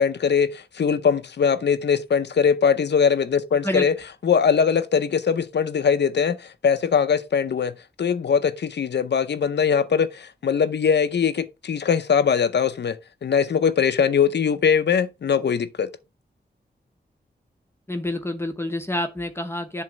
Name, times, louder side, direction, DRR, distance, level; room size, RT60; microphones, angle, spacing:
voice 1, 0.0-3.9 4.2-7.7 8.0-15.9, left 6 dB, 70° left, 0.6 m, -21 dB
voice 2, 17.9-19.8, left 1 dB, 15° left, 0.8 m, -28 dB
7.6 x 3.1 x 6.2 m
wide cardioid pair, 100°, 18 cm